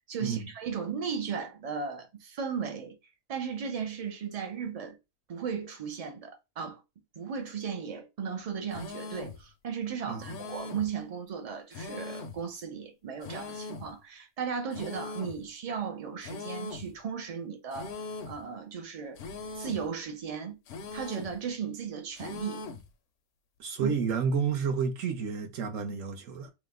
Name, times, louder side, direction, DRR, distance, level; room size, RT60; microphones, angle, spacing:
voice 1, 0.1-3.0 3.3-5.0 5.3-6.8 7.2-19.2 19.6-20.6 20.9-22.6 23.8-23.9, right 6 dB, 50° right, 0.4 m, -36 dB
sound 1, 8.7-9.4 10.2-10.9 11.7-12.4 13.2-13.9 14.7-15.4 16.2-16.9 17.7-18.4 19.2-19.9 20.7-21.4 22.2-22.9, left 3 dB, 65° left, 0.7 m, -40 dB
voice 2, 10.1-10.4 23.6-26.5, right 6 dB, 70° right, 1.1 m, -30 dB
3.1 x 2.1 x 3.5 m
omnidirectional pair, 1.5 m